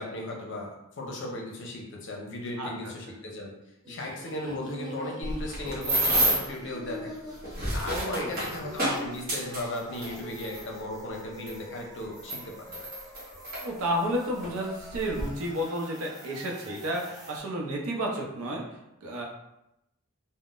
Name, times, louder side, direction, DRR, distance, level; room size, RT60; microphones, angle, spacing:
voice 1, 0.0-3.5 3.9-7.1 7.7-12.9, left 1 dB, 55° left, 0 dB, 0.6 m, -36 dB
sound 1, 3.8-17.4, equal, 15° right, 0.5 m, -46 dB
sound 2, 5.2-6.6 7.3-10.6 11.5-11.6 12.2-13.6 14.4-14.6 14.9-15.2, right 1 dB, 40° right, 1.0 m, -29 dB
voice 2, 7.9-8.5 13.6-19.2, equal, 70° right, -1 dB, 0.6 m, -32 dB
3.6 x 2.0 x 2.4 m, 0.86 s
head